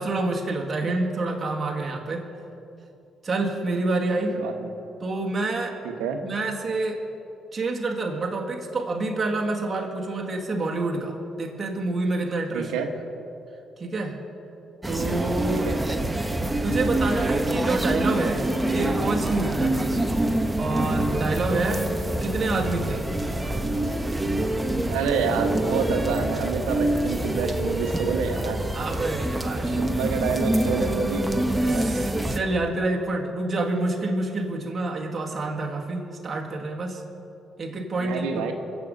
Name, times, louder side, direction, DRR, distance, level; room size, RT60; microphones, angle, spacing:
voice 1, 0.0-2.3 3.2-4.4 5.0-5.8 6.2-7.0 7.5-12.7 13.8-14.2 14.8-15.7 16.6-19.9 20.6-21.9 22.2-23.1 28.7-29.9 31.6-37.0 37.6-38.5, right 2 dB, 40° right, -1 dB, 1.9 m, -27 dB
voice 2, 4.3-4.7 5.8-6.2 12.5-12.9 15.5-15.8 24.9-28.6 29.7-31.3 38.0-38.5, right 6 dB, 90° right, 5 dB, 1.1 m, -28 dB
sound 1, 14.8-32.4, right 1 dB, 10° right, 1.1 m, -26 dB
22.5 x 7.6 x 5.4 m, 2.8 s
supercardioid pair, 65°, 0 cm